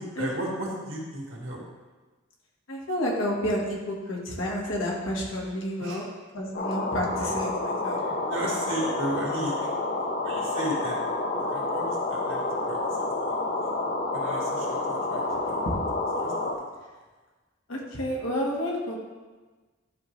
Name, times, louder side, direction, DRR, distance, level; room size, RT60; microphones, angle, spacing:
voice 1, 0.0-1.6 5.8-6.0 8.3-9.7 10.2-11.0 11.5-12.8 13.2-13.3 14.1-15.6 16.2-16.6, right 1 dB, 80° right, -3 dB, 2.0 m, -34 dB
voice 2, 2.7-6.1 6.3-8.0 15.6-15.7 17.7-19.0, equal, 85° left, -2 dB, 1.6 m, -30 dB
sound 1, 6.5-16.6, left 2 dB, 50° left, 0.7 m, -29 dB
11.5 x 4.0 x 3.2 m, 1.3 s
head